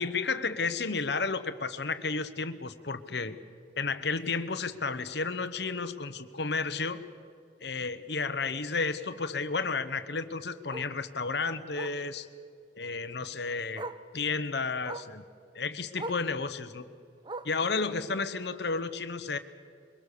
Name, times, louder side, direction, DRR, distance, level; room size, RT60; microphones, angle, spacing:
voice 1, 0.0-3.4 3.8-7.0 7.6-12.3 12.8-13.9 14.1-15.2 15.5-16.8 17.4-19.4, left 4 dB, 65° left, 11 dB, 1.1 m, -32 dB
Bark, 4.2-4.4 4.8-4.9 5.3-5.4 5.7-5.8 7.2-7.3 9.8-9.9 10.7-11.0 11.7-12.0 13.2-13.3 13.7-14.1 14.8-15.2 15.9-16.3 17.2-17.7 18.7-18.8, right 2 dB, 25° right, 0.8 m, -40 dB
23.0 x 22.5 x 6.8 m, 2.4 s
head